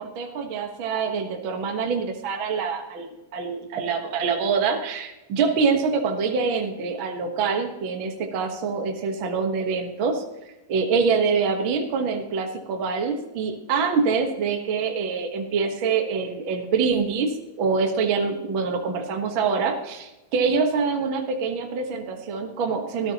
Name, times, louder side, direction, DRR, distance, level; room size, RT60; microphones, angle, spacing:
voice 1, 0.0-3.1 3.3-10.2 10.7-23.1, right 5 dB, 55° right, 4 dB, 1.6 m, -25 dB
19.0 x 14.0 x 2.9 m, 0.99 s
omnidirectional pair, 3.7 m